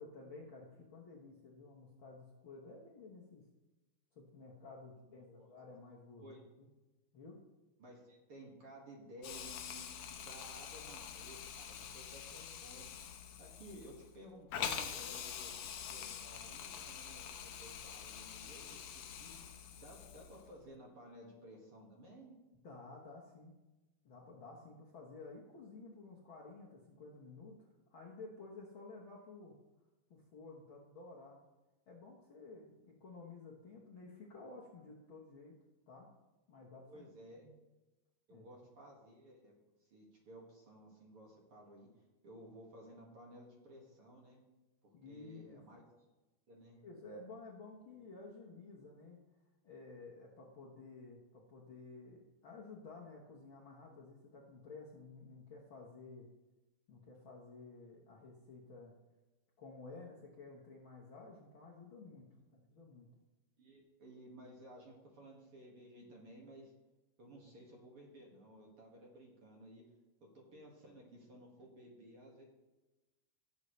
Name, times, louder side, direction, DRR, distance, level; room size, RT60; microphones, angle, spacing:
voice 1, 0.0-3.4 4.1-6.7 7.1-7.4 22.6-23.5 24.0-29.6 30.1-31.4 31.9-35.6 35.9-36.1 36.5-37.0 37.4-37.5 38.3-38.4 44.9-45.6 46.8-49.2 49.6-56.3 56.9-58.9 59.6-62.3 62.7-63.1, left 3 dB, 55° left, -3 dB, 1.5 m, -53 dB
voice 2, 5.1-5.5 6.2-6.4 7.8-12.9 13.4-19.5 19.8-22.3 36.8-37.4 38.3-39.5 39.8-41.9 42.2-44.4 45.1-45.8 46.5-46.8 62.4-62.6 63.6-66.7 67.2-69.8 70.3-72.4, right 1 dB, 45° right, -1 dB, 2.5 m, -56 dB
Hiss, 9.2-20.5, left 8 dB, 70° left, 1.6 m, -45 dB
17.5 x 7.3 x 3.2 m, 1.1 s
omnidirectional pair, 3.7 m